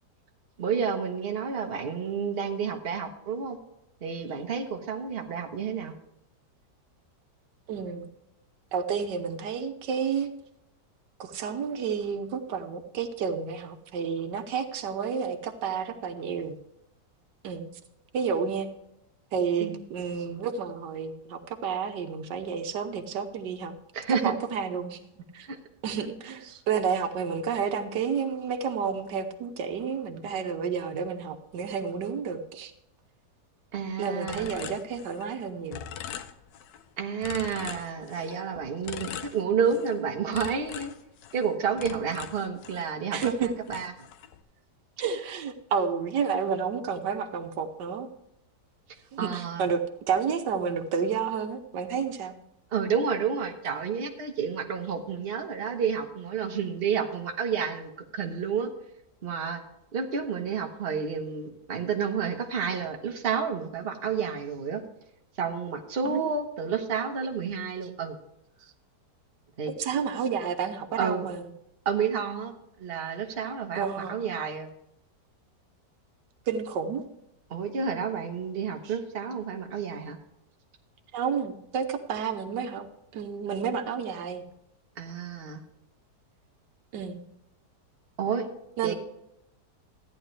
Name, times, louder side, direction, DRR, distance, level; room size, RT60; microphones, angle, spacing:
voice 1, 0.6-3.6 4.0-5.9 19.6-19.8 23.9-24.3 25.5-25.6 33.7-34.5 37.0-40.9 41.3-43.9 49.2-49.6 52.7-58.7 59.2-59.6 59.9-64.8 65.4-68.2 69.6-69.7 71.0-71.3 71.8-72.5 72.8-74.7 77.5-80.2 85.0-85.6 88.2-88.5 88.8-88.9, right 6 dB, 40° right, 3 dB, 1.2 m, -30 dB
voice 2, 7.7-8.1 8.7-10.3 11.2-16.6 17.4-17.7 18.1-18.7 19.3-23.7 24.1-25.5 25.8-32.7 34.0-35.8 39.0-39.1 43.1-43.5 45.0-48.1 49.1-52.3 66.0-66.3 69.7-71.5 73.8-74.2 76.5-77.0 78.8-78.9 81.1-82.9 83.1-84.4 86.9-87.2 88.8-88.9, right 6 dB, 90° right, 8 dB, 1.5 m, -30 dB
sound 1, 34.3-35.4 35.7-36.8 37.2-38.4 38.8-40.0 40.3-42.9 43.2-44.4, left 9 dB, 90° left, 1.3 m, -41 dB
14.0 x 9.9 x 3.2 m, 0.81 s
omnidirectional pair, 1.8 m